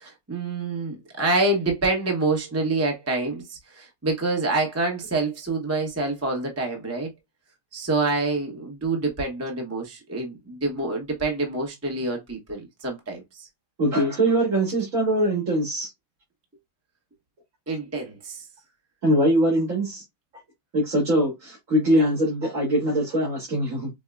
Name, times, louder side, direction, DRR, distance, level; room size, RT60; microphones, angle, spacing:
voice 1, 0.0-7.1 7.7-13.5 17.7-18.4, right 2 dB, 15° right, 0.8 m, -27 dB
voice 2, 13.8-15.9 19.0-20.0 20.7-23.9, right 1 dB, 65° right, 2.1 m, -22 dB
5.3 x 2.1 x 2.3 m
omnidirectional pair, 1.5 m